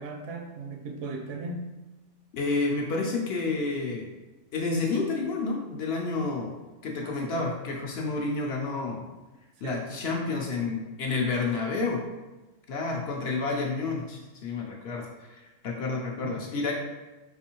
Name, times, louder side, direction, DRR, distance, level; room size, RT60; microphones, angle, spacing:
voice 1, 0.0-1.7 7.0-7.4 9.6-10.0 16.2-16.4, right 3 dB, 75° right, 2 dB, 0.9 m, -37 dB
voice 2, 2.3-4.1 4.5-6.5 6.8-9.0 9.6-12.0 12.7-16.7, left 3 dB, 65° left, 0 dB, 0.7 m, -30 dB
4.1 x 2.6 x 2.9 m, 1.1 s
omnidirectional pair, 1.3 m